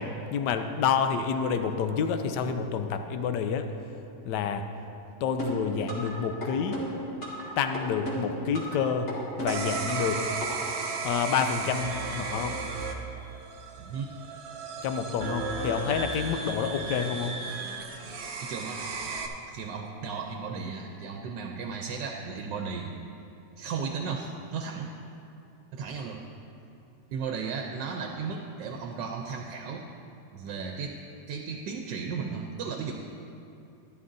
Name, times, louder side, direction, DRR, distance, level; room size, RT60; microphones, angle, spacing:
voice 1, 0.0-3.7 4.2-4.7 5.2-6.9 7.6-9.1 9.4-10.2 11.0-12.7 14.8-17.4, left 6 dB, 80° left, 8 dB, 1.2 m, -28 dB
sound 1, 5.4-6.1 6.4-7.4 7.7-8.8 9.1-10.1 10.4-10.5, equal, 40° left, 2.2 m, -34 dB
sound 2, 9.5-19.3, right 4 dB, 55° right, 0.7 m, -35 dB
voice 2, 13.8-14.1 18.4-18.9 19.4-22.9 23.6-24.9 25.7-26.2 27.1-29.8 30.3-31.0 31.3-32.9, right 5 dB, 90° right, 2 dB, 1.3 m, -35 dB
13.0 x 11.5 x 2.6 m, 2.8 s
omnidirectional pair, 1.9 m